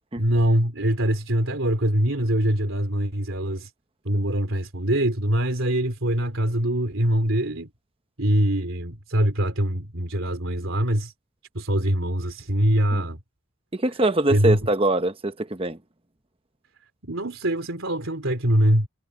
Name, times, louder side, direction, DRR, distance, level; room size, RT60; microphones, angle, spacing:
voice 1, 0.2-3.7 4.0-7.7 8.2-11.1 11.5-13.2 14.3-14.6 17.0-18.9, right 1 dB, 70° right, 3.3 m, -23 dB
voice 2, 13.7-15.8, right 2 dB, 25° right, 1.0 m, -23 dB
head